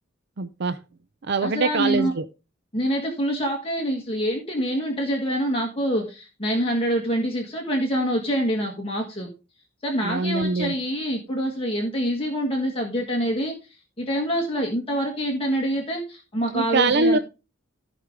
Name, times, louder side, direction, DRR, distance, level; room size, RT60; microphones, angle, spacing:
voice 1, 0.4-0.8 1.2-2.2 10.0-10.7 16.5-17.2, right 3 dB, 60° right, 11 dB, 0.6 m, -23 dB
voice 2, 1.4-2.1 2.7-9.3 9.8-17.2, equal, 30° left, 0 dB, 1.7 m, -26 dB
15.5 x 5.2 x 3.5 m, 0.31 s
head